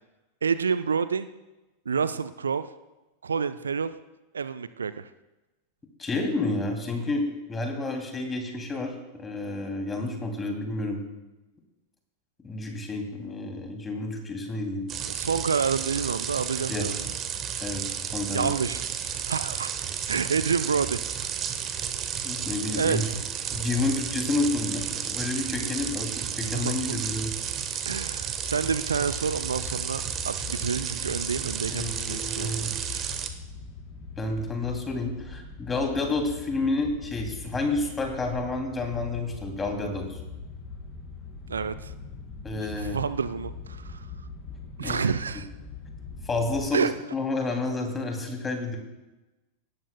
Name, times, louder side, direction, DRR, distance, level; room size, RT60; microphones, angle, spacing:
voice 1, 0.4-1.3 1.9-2.7 3.2-3.9 4.3-5.1 15.0-17.0 18.3-18.8 19.2-19.7 20.1-21.0 22.8-23.2 26.5-27.0 27.9-32.5 32.9-33.0 41.5-41.9 42.7-44.0 44.8-45.5 46.7-46.9, right 6 dB, 70° right, 13 dB, 0.4 m, -28 dB
voice 2, 6.0-11.0 12.4-14.9 16.7-16.9 17.6-17.8 18.1-18.5 22.2-23.0 23.5-27.3 31.7-32.7 34.2-40.2 42.4-43.0 44.8-45.0 46.2-48.8, left 2 dB, 15° left, 3 dB, 2.8 m, -30 dB
sound 1, 14.9-33.3, right 8 dB, 30° right, 1.0 m, -32 dB
sound 2, 28.4-46.6, left 4 dB, 30° left, 4.3 m, -42 dB
18.5 x 13.0 x 2.3 m, 1.1 s
figure-of-eight pair, 90°, 0 cm